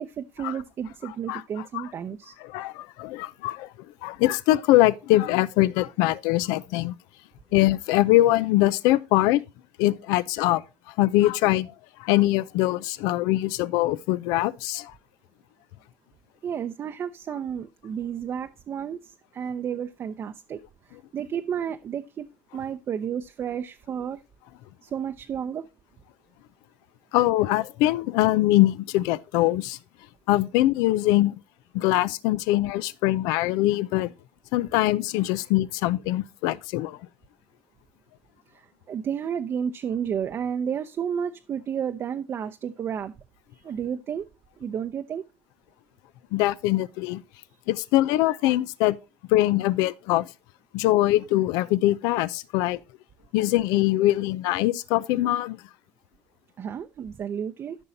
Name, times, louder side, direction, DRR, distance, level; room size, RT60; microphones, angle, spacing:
voice 1, 0.0-2.3 16.4-20.6 21.1-22.3 22.5-24.2 24.8-25.7 38.5-43.1 43.5-44.3 44.6-45.2 56.6-57.8, right 8 dB, 40° right, 0.6 m, -31 dB
voice 2, 2.4-3.7 4.0-6.9 7.5-9.4 9.8-10.6 11.0-11.7 12.0-14.9 27.1-29.8 30.3-31.3 31.7-34.1 34.5-37.0 46.3-47.2 47.7-49.0 49.3-50.3 50.7-52.8 53.3-55.6, left 16 dB, 80° left, 0.5 m, -22 dB
13.5 x 5.4 x 2.7 m
supercardioid pair, 100°, 6 cm